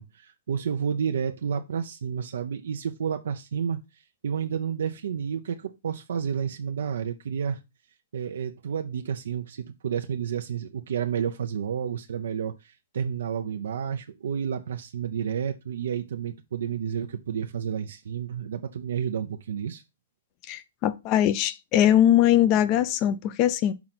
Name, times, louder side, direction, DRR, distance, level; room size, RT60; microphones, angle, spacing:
voice 1, 0.0-3.8 4.2-7.6 8.1-19.8, right 7 dB, 75° right, 0.7 m, -30 dB
voice 2, 20.5-23.7, left 11 dB, 30° left, 0.6 m, -21 dB
5.9 x 3.8 x 5.9 m
hypercardioid pair, 145°, 0 cm